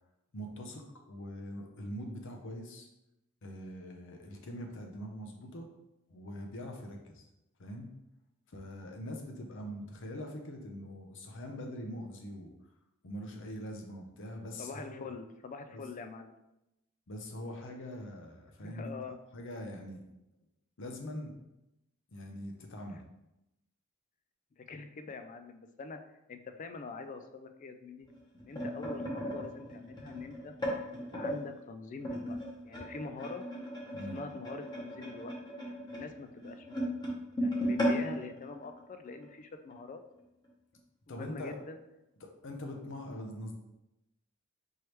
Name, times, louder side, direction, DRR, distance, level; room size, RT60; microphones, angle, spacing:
voice 1, 0.3-2.9 3.4-5.7 6.1-7.2 7.6-7.9 8.5-12.5 13.0-15.1 15.7-15.8 17.1-18.9 19.3-20.0 20.8-21.3 22.1-23.0 33.9-34.2 41.1-41.6 42.2-43.5, equal, 60° left, 3 dB, 0.7 m, -43 dB
voice 2, 14.6-16.3 18.6-19.2 22.9-23.0 24.6-26.0 26.3-28.1 28.4-30.5 31.1-32.4 32.6-33.4 34.1-35.3 35.9-37.1 37.4-40.0 41.1-41.8, left 4 dB, 35° left, 7 dB, 0.3 m, -44 dB
sound 1, 28.1-31.4 32.0-39.3 39.7-39.9 40.2-40.5 41.2-41.3, equal, 20° left, 1.0 m, -36 dB
4.6 x 3.2 x 3.0 m, 0.90 s
head